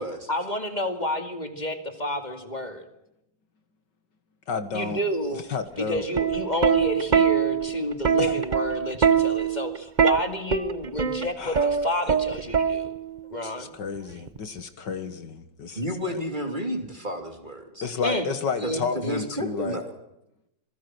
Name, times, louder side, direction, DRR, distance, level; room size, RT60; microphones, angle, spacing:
voice 1, 0.3-2.8 4.7-5.4 5.8-12.9 13.3-13.7 18.0-18.3 18.6-19.1, left 1 dB, 20° left, 7 dB, 2.4 m, -30 dB
voice 2, 4.5-5.0 5.5-6.0 8.2-8.4 11.4-11.7 13.4-15.8 17.8-19.8, left 5 dB, 65° left, 10 dB, 2.2 m, -31 dB
Plucked string instrument, 6.0-13.2 14.3-14.6, right 7 dB, 40° right, 0.6 m, -23 dB
voice 3, 15.7-17.9 18.6-19.9, equal, 25° right, 6 dB, 3.1 m, -31 dB
27.0 x 21.5 x 6.2 m, 0.84 s
omnidirectional pair, 2.1 m